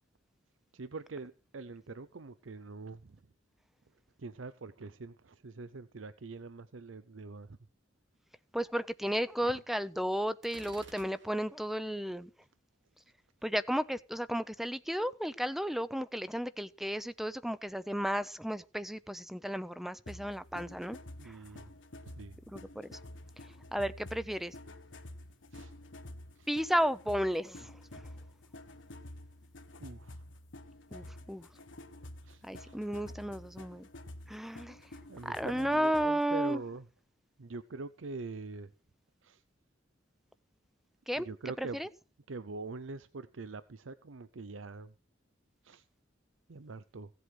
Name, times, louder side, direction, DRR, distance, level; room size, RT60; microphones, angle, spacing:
voice 1, 0.7-3.2 4.2-7.6 9.4-9.6 21.2-21.7 22.1-22.4 25.5-25.7 26.4-26.5 29.8-30.2 32.2-32.8 35.1-36.8 37.4-38.7 39.2-39.4 41.2-41.8 42.3-44.9 45.6-45.9 46.5-47.1, right 3 dB, 85° right, 0.7 m, -44 dB
voice 2, 8.5-12.3 13.4-21.0 21.2-21.4 22.5-22.9 23.7-24.5 26.5-28.0 30.9-31.5 32.4-33.9 34.3-34.8 35.2-36.6 41.1-41.3 41.6-41.9, equal, ahead, 0.6 m, -33 dB
Gunshot gunfire, 10.4-11.7, right 3 dB, 65° right, 3.0 m, -53 dB
sound 1, 20.1-36.2, left 1 dB, 70° left, 1.6 m, -49 dB
16.5 x 8.1 x 6.3 m
head